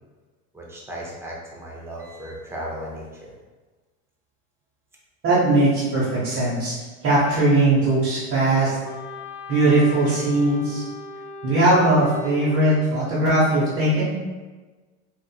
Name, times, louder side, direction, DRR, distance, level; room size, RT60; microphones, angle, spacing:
voice 1, 0.5-3.3 12.2-12.3, equal, 5° right, -4 dB, 0.5 m, -36 dB
voice 2, 5.2-6.7 7.0-8.8 9.5-10.8 11.4-14.1, right 2 dB, 35° right, -9 dB, 0.9 m, -19 dB
Wind instrument woodwind instrument, 8.8-12.8, left 3 dB, 70° left, 0.7 m, -38 dB
4.3 x 2.4 x 2.3 m, 1.3 s
supercardioid pair, 125°, 43 cm